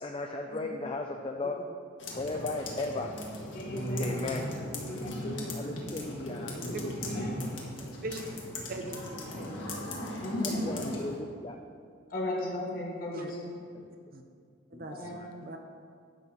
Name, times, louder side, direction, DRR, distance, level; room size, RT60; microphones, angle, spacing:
voice 1, 0.0-1.6 2.1-3.1 4.0-4.4 5.5-6.5 9.3-9.6 10.4-11.6 15.0-15.3, left 2 dB, 25° left, 3 dB, 0.4 m, -36 dB
sound 1, 2.0-11.2, left 1 dB, 65° left, 1.6 m, -37 dB
voice 2, 3.5-4.2 4.9-5.3 7.0-7.3 10.2-10.6 12.1-13.5 15.0-15.2, left 1 dB, 45° left, -2 dB, 1.9 m, -36 dB
voice 3, 8.7-9.0 13.1-13.3 14.1-14.2 14.7-15.6, right 2 dB, 45° right, 4 dB, 0.8 m, -40 dB
11.0 x 4.0 x 7.6 m, 2.1 s
head